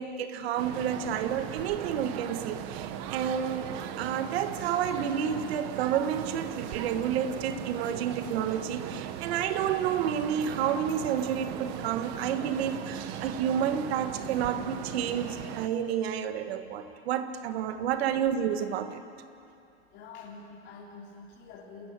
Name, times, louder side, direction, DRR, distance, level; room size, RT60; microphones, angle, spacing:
voice 1, 0.0-3.7 4.0-19.0, right 8 dB, 60° right, 9 dB, 1.7 m, -30 dB
sound 1, 0.6-15.7, right 10 dB, 40° right, 1.1 m, -38 dB
voice 2, 19.9-21.9, left 4 dB, 30° left, -5 dB, 3.5 m, -46 dB
28.0 x 14.5 x 9.1 m, 2.6 s
supercardioid pair, 155°, 35 cm